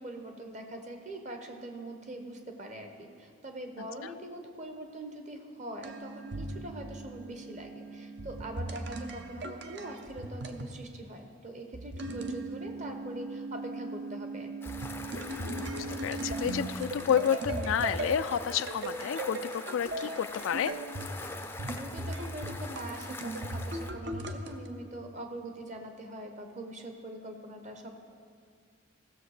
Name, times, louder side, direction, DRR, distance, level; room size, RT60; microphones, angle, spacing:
voice 1, 0.0-14.5 21.7-27.9, right 1 dB, 35° right, 4 dB, 1.0 m, -43 dB
sound 1, 5.8-10.8 11.7-24.7, right 2 dB, 60° right, 0.7 m, -38 dB
sound 2, 14.6-23.9, left 3 dB, 10° left, 0.4 m, -43 dB
voice 2, 15.4-20.7, left 8 dB, 85° left, 13 dB, 0.3 m, -30 dB
15.5 x 7.0 x 4.9 m, 2.1 s
head